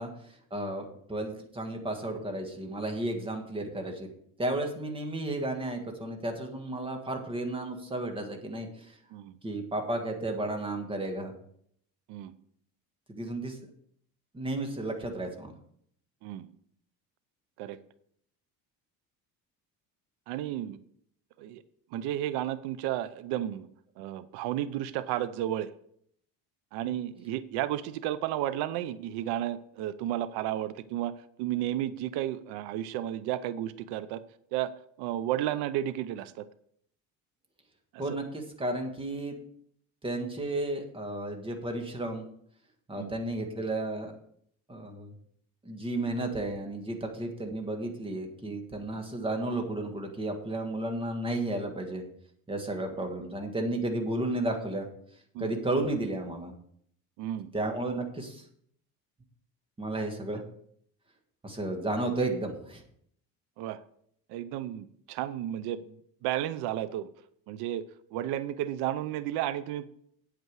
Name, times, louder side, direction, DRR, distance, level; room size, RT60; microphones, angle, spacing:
voice 1, 0.0-4.1 4.4-9.0 9.4-11.3 13.1-13.6 14.3-15.5 38.0-39.3 40.0-42.2 42.9-44.1 44.7-45.1 45.6-52.0 52.5-54.9 55.4-56.5 57.5-58.4 59.8-60.4 61.4-62.8, right 2 dB, 15° right, 3 dB, 1.6 m, -33 dB
voice 2, 20.3-20.8 21.4-21.6 21.9-23.7 24.0-25.7 26.7-34.2 34.5-34.7 35.0-36.4 37.9-38.0 43.0-43.1 55.3-55.5 57.2-57.5 60.3-60.4 63.6-63.8 64.3-67.1 67.5-67.8 68.1-69.9, right 12 dB, 90° right, 15 dB, 0.7 m, -33 dB
9.2 x 8.3 x 4.7 m, 0.66 s
cardioid pair, 150°, 38 cm